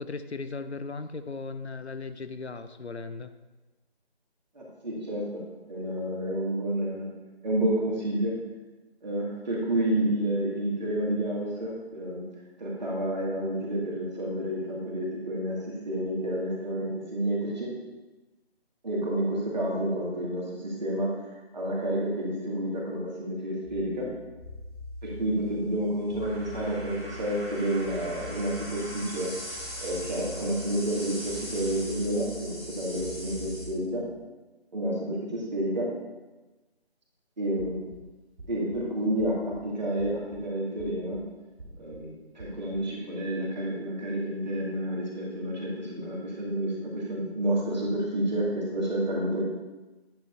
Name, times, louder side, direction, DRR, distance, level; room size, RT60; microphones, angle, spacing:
voice 1, 0.0-3.3, left 4 dB, 85° left, 10 dB, 0.6 m, -37 dB
voice 2, 4.5-7.1 7.4-8.4 9.0-12.3 12.6-17.7 18.8-21.1 21.5-24.1 25.0-29.3 29.8-34.1 34.7-35.9 37.4-37.8 38.5-41.2 41.8-49.4, right 1 dB, 45° right, -4 dB, 2.2 m, -30 dB
sound 1, 23.6-33.7, left 1 dB, 15° left, 1.9 m, -40 dB
sound 2, 37.6-38.0 38.4-38.8 39.2-39.6 40.0-40.4 40.8-41.2 41.6-42.0 42.4-42.8, right 1 dB, 85° right, 1.0 m, -46 dB
9.0 x 7.5 x 2.7 m, 1.2 s
figure-of-eight pair, 160°, 32 cm